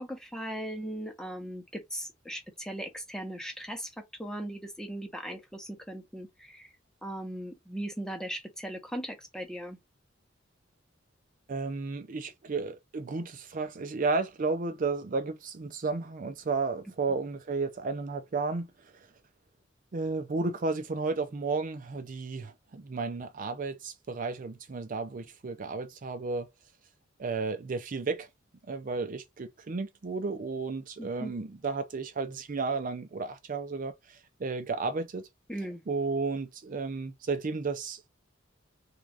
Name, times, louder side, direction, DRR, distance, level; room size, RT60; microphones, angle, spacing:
voice 1, 0.0-6.7 7.0-9.8 31.0-31.3 35.5-35.8, right 1 dB, 5° left, 0.8 m, -38 dB
voice 2, 11.5-18.9 19.9-26.5 27.2-28.3 28.7-35.3 35.9-38.1, right 4 dB, 45° right, 0.5 m, -33 dB
3.6 x 2.4 x 3.4 m
head